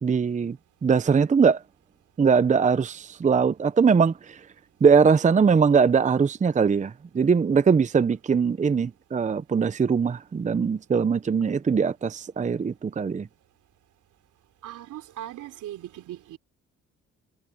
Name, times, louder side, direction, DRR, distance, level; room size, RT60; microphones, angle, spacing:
voice 1, 0.0-0.6 0.8-1.6 2.2-4.4 4.8-13.3, right 6 dB, 25° right, 0.7 m, -21 dB
voice 2, 14.6-16.4, right 13 dB, 80° right, 3.5 m, -39 dB
cardioid pair, 90°, 30 cm